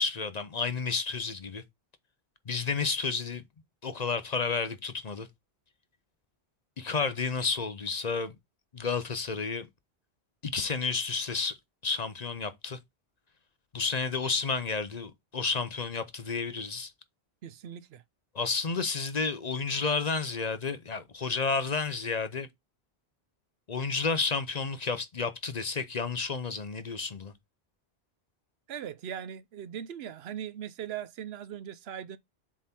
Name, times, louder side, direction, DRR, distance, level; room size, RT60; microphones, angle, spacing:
voice 1, 0.0-1.6 2.5-3.4 3.8-5.3 6.8-8.3 8.7-9.7 10.4-11.6 11.8-12.8 13.7-16.9 18.3-22.5 23.7-27.3, left 4 dB, 45° left, 0.8 m, -31 dB
voice 2, 17.4-18.0 28.7-32.2, right 9 dB, 75° right, 0.8 m, -39 dB
7.4 x 3.7 x 4.3 m
omnidirectional pair, 1.1 m